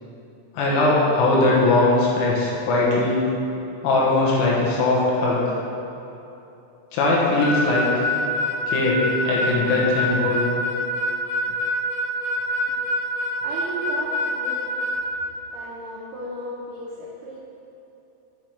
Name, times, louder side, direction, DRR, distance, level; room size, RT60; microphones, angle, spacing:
voice 1, 0.6-3.2 3.8-5.5 6.9-8.1 8.7-10.5, left 2 dB, 85° left, -5 dB, 3.8 m, -20 dB
Harmonica, 7.4-15.0, left 1 dB, 65° left, 2.6 m, -25 dB
voice 2, 13.4-14.8 15.5-17.4, right 2 dB, 85° right, -6 dB, 2.2 m, -35 dB
8.2 x 4.5 x 4.8 m, 2.9 s
omnidirectional pair, 5.7 m